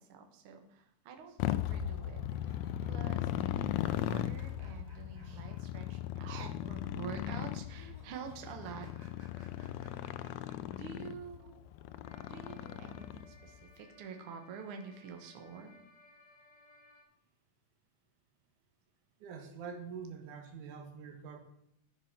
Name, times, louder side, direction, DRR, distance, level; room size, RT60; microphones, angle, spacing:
voice 1, 0.0-2.2 2.5-8.9 10.7-11.6 12.3-15.7, right 6 dB, 55° right, 4 dB, 1.8 m, -47 dB
Motorcycle, 1.4-13.5, left 12 dB, 80° left, 1.8 m, -37 dB
sound 1, 2.2-5.9 6.1-6.2 7.7-10.8, equal, 15° right, 1.9 m, -61 dB
sound 2, 12.0-17.0, left 2 dB, 35° left, 3.7 m, -61 dB
voice 2, 19.2-21.4, right 6 dB, 80° right, 6 dB, 2.7 m, -45 dB
10.5 x 7.2 x 5.9 m, 0.78 s
omnidirectional pair, 3.5 m